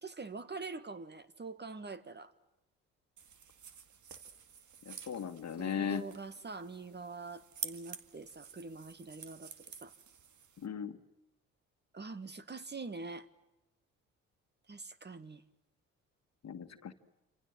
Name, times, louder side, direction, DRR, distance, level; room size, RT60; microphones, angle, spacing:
voice 1, 0.0-2.3 5.6-9.9 11.9-13.3 14.7-15.4, right 3 dB, 25° right, 1.8 m, -45 dB
sound 1, 3.2-10.7, right 7 dB, 50° right, 2.1 m, -49 dB
voice 2, 4.9-6.0 10.6-11.0 16.4-16.9, left 7 dB, 45° left, 1.9 m, -37 dB
28.0 x 27.0 x 7.6 m
hypercardioid pair, 50°, 38 cm